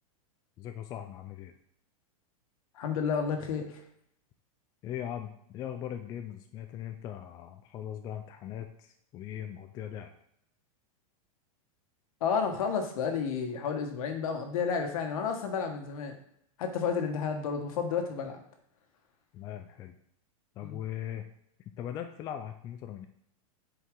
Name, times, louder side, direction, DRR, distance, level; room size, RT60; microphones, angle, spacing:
voice 1, 0.6-1.5 4.8-10.1 19.3-19.9 20.6-21.3 21.8-23.1, left 10 dB, 20° left, 6 dB, 0.4 m, -40 dB
voice 2, 2.7-3.8 12.2-16.1 16.6-18.4 20.6-20.8, left 6 dB, 70° left, 5 dB, 1.5 m, -31 dB
8.2 x 4.6 x 3.8 m, 0.72 s
supercardioid pair, 160°, 18 cm